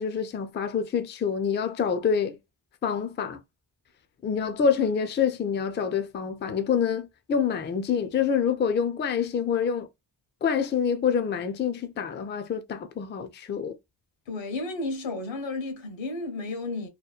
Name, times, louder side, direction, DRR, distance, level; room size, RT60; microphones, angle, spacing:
voice 1, 0.0-2.4 2.8-3.4 4.2-9.9 10.4-13.7, left 7 dB, 25° left, 0.4 m, -26 dB
voice 2, 14.3-16.9, left 2 dB, 75° left, 1.0 m, -32 dB
2.8 x 2.1 x 2.4 m
cardioid pair, 85°, 45 cm